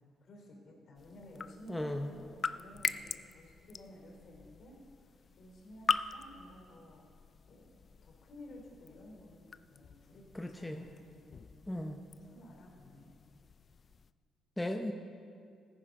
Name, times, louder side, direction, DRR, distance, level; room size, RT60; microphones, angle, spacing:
voice 1, 0.2-7.0 7.5-13.2, left 1 dB, 60° left, 0 dB, 3.3 m, -54 dB
sound 1, 1.0-14.1, left 5 dB, 45° left, 0.4 m, -42 dB
voice 2, 1.7-2.1 10.3-10.9 11.7-12.0 14.6-14.9, left 1 dB, 10° left, 4 dB, 0.7 m, -36 dB
14.5 x 10.0 x 5.3 m, 2.4 s
cardioid pair, 90°, 0 cm